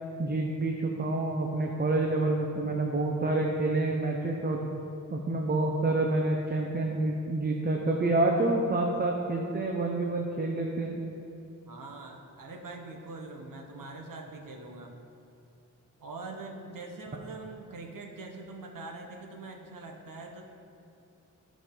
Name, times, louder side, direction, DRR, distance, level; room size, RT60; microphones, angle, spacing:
voice 1, 0.2-4.7 5.1-10.9, right 2 dB, 30° right, 1 dB, 0.7 m, -28 dB
voice 2, 11.7-14.9 16.0-20.4, right 3 dB, 80° right, 2 dB, 1.1 m, -43 dB
14.5 x 5.1 x 3.8 m, 2.7 s
wide cardioid pair, 95°, 33 cm